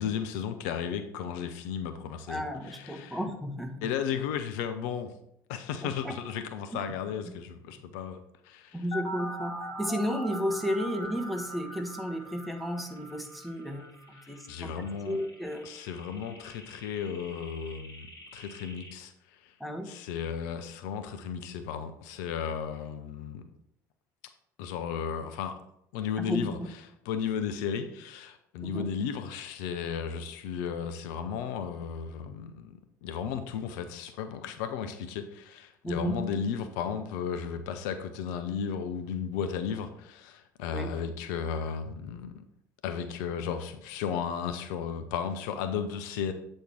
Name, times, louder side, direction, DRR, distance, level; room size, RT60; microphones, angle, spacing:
voice 1, 0.0-3.2 3.8-5.1 5.5-8.8 14.2-15.2 15.6-18.1 18.3-19.5 19.9-23.5 24.6-25.6 25.9-26.6 27.1-42.4 42.8-46.3, left 7 dB, 70° left, 9 dB, 0.6 m, -34 dB
voice 2, 2.3-3.9 5.8-6.1 6.7-6.8 8.7-15.7 19.6-19.9 26.2-26.5 28.6-28.9 35.8-36.2 40.7-41.0, equal, ahead, 4 dB, 1.4 m, -33 dB
sound 1, 8.9-18.9, equal, 40° left, 3.2 m, -42 dB
8.3 x 4.4 x 4.7 m, 0.77 s
hypercardioid pair, 60°, 10 cm